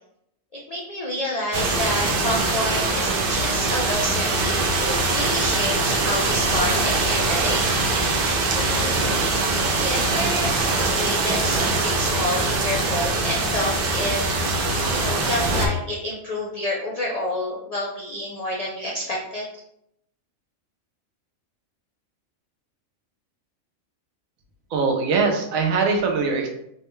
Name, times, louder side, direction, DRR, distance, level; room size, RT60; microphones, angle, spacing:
voice 1, 0.5-8.1 8.5-9.1 9.6-10.5 10.8-14.2 14.9-19.5, left 1 dB, 75° left, -4 dB, 0.3 m, -29 dB
sound 1, 1.5-15.7, right 3 dB, 60° right, 0.6 m, -22 dB
voice 2, 24.7-26.5, right 4 dB, 80° right, 3 dB, 1.1 m, -22 dB
3.6 x 2.2 x 3.0 m, 0.77 s
omnidirectional pair, 1.4 m